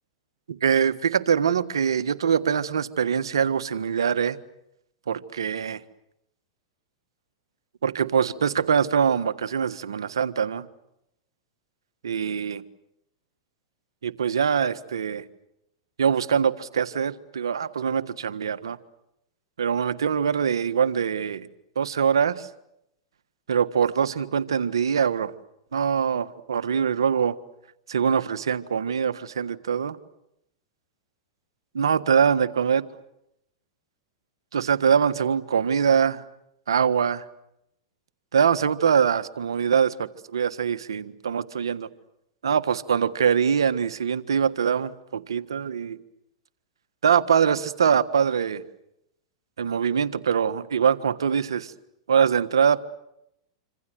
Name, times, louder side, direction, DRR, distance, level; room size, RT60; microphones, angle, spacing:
voice 1, 0.5-4.4 5.1-5.8 7.8-10.7 12.0-12.6 14.0-15.2 16.0-18.8 19.6-21.5 21.7-22.5 23.5-25.3 25.7-27.3 27.9-30.0 31.7-32.8 34.5-36.2 36.7-37.2 38.3-41.9 42.4-46.0 47.0-48.6 49.6-51.7 52.1-52.8, right 7 dB, 85° right, 11 dB, 1.6 m, -23 dB
27.0 x 26.5 x 7.8 m, 0.80 s
hypercardioid pair, 110°, 2 cm